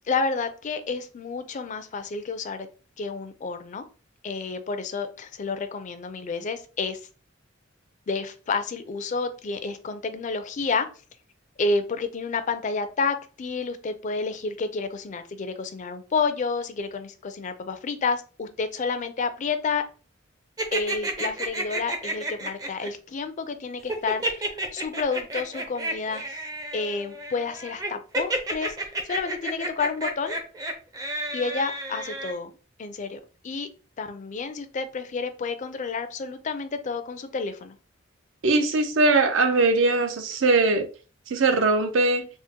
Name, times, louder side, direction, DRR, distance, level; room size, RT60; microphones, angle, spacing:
voice 1, 0.1-2.7 3.0-3.8 4.2-7.0 8.1-10.9 11.6-19.8 20.7-26.4 26.7-30.4 31.3-32.5 32.8-33.7 34.0-37.8, left 4 dB, 40° left, 0.4 m, -30 dB
sound 1, 20.6-22.9 23.9-32.3, right 1 dB, 20° right, 0.5 m, -31 dB
voice 2, 38.4-40.9 41.3-42.3, right 3 dB, 75° right, 0.5 m, -21 dB
3.6 x 2.0 x 2.7 m
head